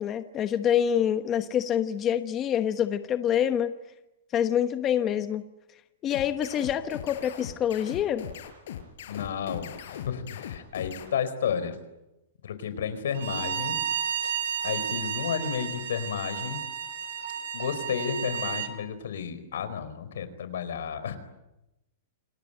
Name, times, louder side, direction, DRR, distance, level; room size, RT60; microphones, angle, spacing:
voice 1, 0.0-3.7 4.3-5.4 6.0-8.2, left 9 dB, 25° left, 9 dB, 1.1 m, -26 dB
sound 1, 6.1-11.1, left 10 dB, 70° left, 4.5 m, -39 dB
voice 2, 9.1-11.8 12.4-13.8 14.2-14.3 14.6-16.6 17.5-21.2, left 7 dB, 85° left, 12 dB, 4.6 m, -32 dB
Bowed string instrument, 13.1-18.7, right 8 dB, 80° right, 4.7 m, -32 dB
28.5 x 19.5 x 9.1 m, 0.94 s
supercardioid pair, 160°, 0 cm